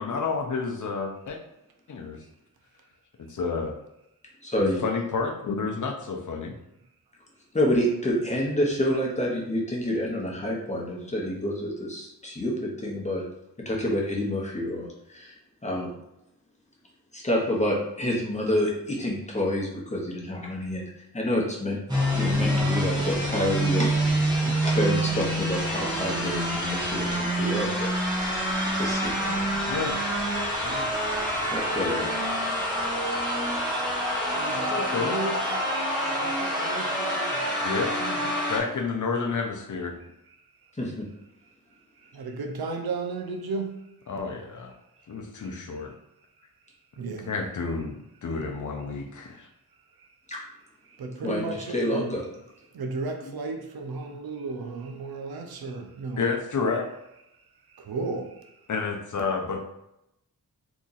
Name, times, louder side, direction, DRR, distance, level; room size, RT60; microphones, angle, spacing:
voice 1, 0.0-1.4 1.9-2.2 3.2-3.7 4.6-6.6 29.7-30.0 30.6-30.9 34.7-35.3 37.6-37.9 38.5-40.0 44.1-44.7 45.1-45.9 47.3-49.5 54.1-54.2 56.2-56.9 58.7-59.6, left 4 dB, 55° left, 0.6 m, -30 dB
voice 2, 4.4-4.8 7.5-13.2 13.6-15.3 15.6-15.9 17.1-21.8 22.1-27.9 28.2-28.3 28.7-29.6 31.5-32.1 40.8-41.1 50.3-50.4 51.2-51.5 51.7-52.2, left 1 dB, 20° left, 0.9 m, -28 dB
sound 1, 21.9-38.6, equal, 10° right, 1.1 m, -27 dB
voice 3, 34.3-35.7 36.0-38.5 40.3-40.4 40.6-40.7 41.7-43.9 45.1-45.5 46.9-47.3 50.0-50.1 50.8-52.1 52.7-56.3 57.3-58.7, right 3 dB, 85° right, 0.6 m, -35 dB
2.9 x 2.5 x 3.9 m
wide cardioid pair, 110°, 36 cm